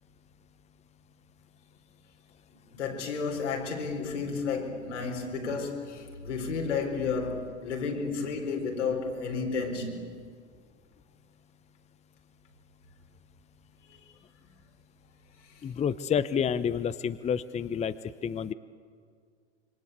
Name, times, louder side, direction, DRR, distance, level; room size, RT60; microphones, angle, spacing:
voice 1, 2.7-10.1 15.6-15.7, left 4 dB, 80° left, 1 dB, 4.5 m, -32 dB
voice 2, 15.6-18.5, left 7 dB, 20° left, 14 dB, 0.8 m, -29 dB
26.5 x 23.5 x 8.2 m, 2.1 s
hypercardioid pair, 90°, 36 cm